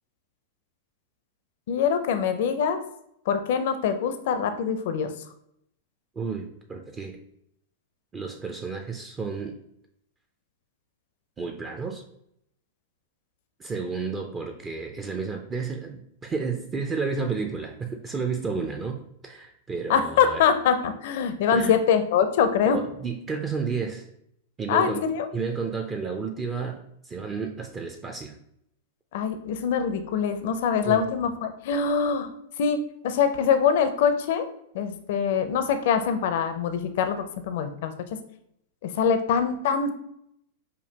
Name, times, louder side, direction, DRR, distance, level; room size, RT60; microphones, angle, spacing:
voice 1, 1.7-2.8 3.3-5.1 19.9-22.8 24.7-25.3 29.1-32.3 32.6-34.4 34.7-37.9 38.8-39.9, left 7 dB, 65° left, 8 dB, 0.5 m, -24 dB
voice 2, 6.2-7.2 8.1-9.6 11.4-12.0 13.6-20.4 21.5-21.7 22.7-24.1 24.6-25.0 25.3-28.3 30.8-31.0, right 5 dB, 20° right, 3 dB, 0.4 m, -31 dB
5.2 x 2.4 x 2.8 m, 0.74 s
hypercardioid pair, 115°, 0 cm